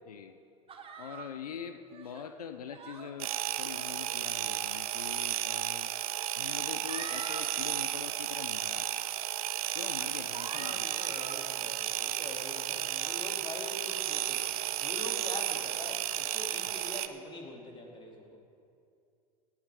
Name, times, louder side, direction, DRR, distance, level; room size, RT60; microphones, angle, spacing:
voice 1, 0.1-0.4 1.0-3.3 3.6-5.9 6.3-9.0 9.7-10.9 16.7-16.8, left 8 dB, 85° left, 8 dB, 0.6 m, -43 dB
sound 1, 0.7-1.3 1.9-2.3 2.7-3.1 4.0-4.4 5.4-5.5 6.4-7.5 7.9-8.2 8.9-9.0 9.6-9.9 10.3-11.4, right 5 dB, 30° right, 1.5 m, -46 dB
sound 2, 3.2-17.1, right 13 dB, 70° right, 0.7 m, -33 dB
voice 2, 10.5-14.5 14.8-18.4, left 1 dB, 25° left, 0 dB, 2.8 m, -44 dB
17.5 x 12.0 x 3.6 m, 2.5 s
hypercardioid pair, 80°, 19 cm